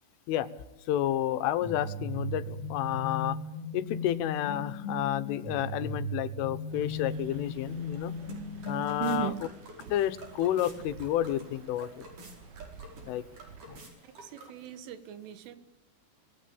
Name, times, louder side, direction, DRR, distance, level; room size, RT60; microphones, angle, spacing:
voice 1, 0.9-3.4 3.7-8.1 8.7-9.3 9.9-12.1 13.0-13.2 13.7-13.8, left 12 dB, 85° left, 13 dB, 3.7 m, -30 dB
sound 1, 1.6-9.2, left 1 dB, 40° left, 3.1 m, -37 dB
sound 2, 6.7-13.8, right 6 dB, 60° right, 2.1 m, -51 dB
sound 3, 7.6-14.8, right 2 dB, 40° right, 6.1 m, -51 dB
voice 2, 9.0-9.4 14.0-15.6, right 10 dB, 85° right, 12 dB, 4.1 m, -36 dB
25.5 x 20.5 x 8.7 m, 0.94 s
omnidirectional pair, 5.6 m